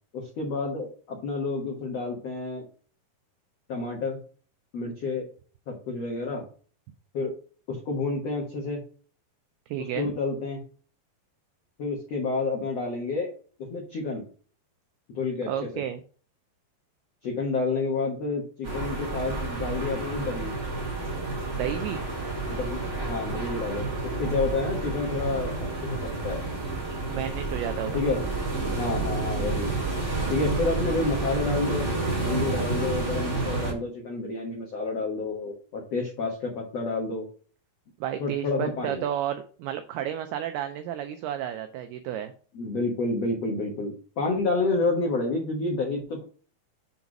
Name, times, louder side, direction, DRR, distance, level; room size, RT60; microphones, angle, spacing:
voice 1, 0.1-2.6 3.7-4.2 4.7-5.3 5.7-6.4 7.1-7.3 7.7-8.8 10.0-10.6 11.8-13.3 13.7-14.2 15.1-15.5 15.7-15.8 17.2-20.5 22.5-26.4 27.9-28.2 28.7-29.7 30.3-31.9 32.2-37.2 38.2-39.0 42.5-46.2, left 3 dB, 85° left, -1 dB, 1.4 m, -29 dB
voice 2, 9.7-10.1 15.5-16.0 21.6-22.0 27.1-28.0 32.5-32.6 38.0-42.3, right 10 dB, 90° right, 8 dB, 2.2 m, -32 dB
sound 1, 18.6-33.7, right 3 dB, 35° right, 0.8 m, -30 dB
7.1 x 4.0 x 5.9 m, 0.41 s
omnidirectional pair, 5.2 m